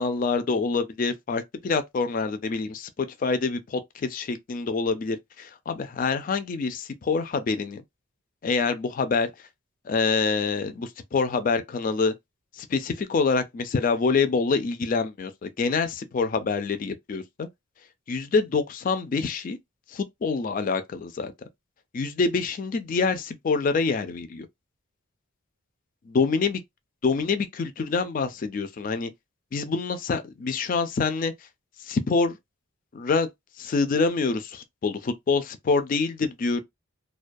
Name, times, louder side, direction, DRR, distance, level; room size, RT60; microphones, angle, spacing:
voice 1, 0.0-7.8 8.4-9.3 9.9-12.1 12.6-17.5 18.1-19.6 19.9-21.3 21.9-24.5 26.1-26.6 27.0-29.1 29.5-31.3 31.8-32.4 32.9-33.3 33.6-36.6, left 4 dB, 40° left, 0.3 m, -26 dB
2.2 x 2.2 x 2.5 m
head